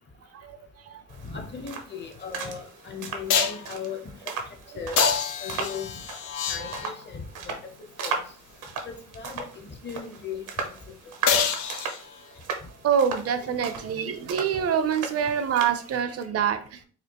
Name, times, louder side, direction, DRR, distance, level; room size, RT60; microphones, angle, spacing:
sound 1, 1.1-16.0, right 5 dB, 85° right, 0.8 m, -37 dB
voice 1, 1.2-4.3 4.7-5.0 5.4-6.0 6.5-8.2 8.9-10.7, left 6 dB, 35° left, 5 dB, 0.8 m, -38 dB
sound 2, 2.2-2.3 3.3-3.7 5.0-7.1 11.3-12.4 16.2-16.3, left 6 dB, 85° left, 0.5 m, -26 dB
voice 2, 12.8-16.8, right 7 dB, 55° right, 10 dB, 0.5 m, -26 dB
4.3 x 2.4 x 2.9 m, 0.43 s
cardioid pair, 90°, 30 cm